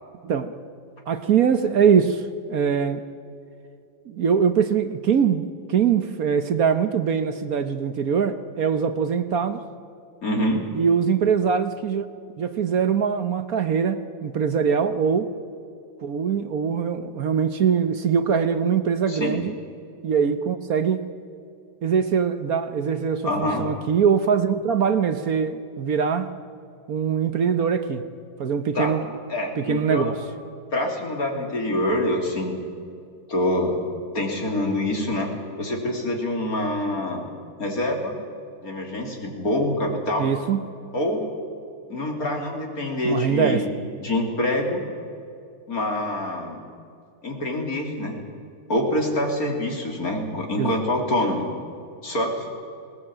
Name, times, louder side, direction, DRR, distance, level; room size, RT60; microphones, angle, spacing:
voice 1, 1.1-3.0 4.1-9.6 10.7-12.1 12.4-15.3 16.0-19.6 20.0-21.0 21.8-26.3 26.9-28.0 28.4-29.1 29.6-30.2 40.2-40.6 43.0-43.7 50.6-50.7, right 7 dB, 55° right, 10 dB, 1.2 m, -22 dB
voice 2, 10.2-10.6 19.1-19.4 23.2-23.7 28.8-28.9 29.3-30.2 30.7-32.6 33.3-33.8 34.1-35.3 35.6-37.3 37.6-38.2 38.6-40.3 40.9-41.2 41.9-43.7 44.0-44.8 45.7-46.6 47.2-48.2 48.7-51.5 52.0-52.5, left 1 dB, 45° left, 2 dB, 3.5 m, -25 dB
20.5 x 19.0 x 8.8 m, 2.5 s
omnidirectional pair, 2.1 m